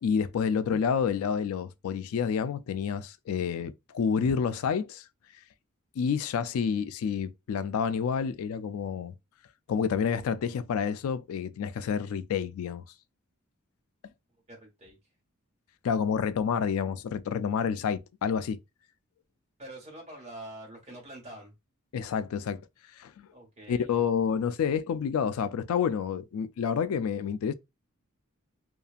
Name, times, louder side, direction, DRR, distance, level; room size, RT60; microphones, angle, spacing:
voice 1, 0.0-5.0 6.0-9.1 9.7-12.8 15.8-18.6 21.9-22.6 23.0-23.3 23.7-27.5, left 7 dB, 85° left, 0.3 m, -29 dB
voice 2, 14.5-15.0 19.6-21.5 23.3-24.0, right 1 dB, 30° right, 1.4 m, -45 dB
2.7 x 2.3 x 2.4 m
head